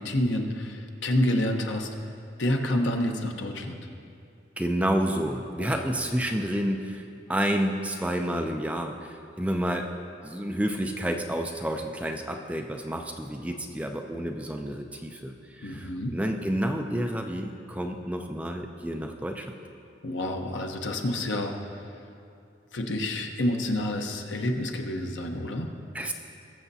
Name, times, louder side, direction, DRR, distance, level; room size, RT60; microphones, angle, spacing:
voice 1, 0.0-1.9 2.4-3.9 5.6-5.8 15.6-16.1 20.0-21.9 22.7-25.7, left 1 dB, 70° left, 3 dB, 0.9 m, -28 dB
voice 2, 4.6-9.9 10.2-19.5 25.9-26.1, right 1 dB, 5° right, 3 dB, 0.4 m, -30 dB
20.0 x 7.1 x 2.7 m, 2.5 s
head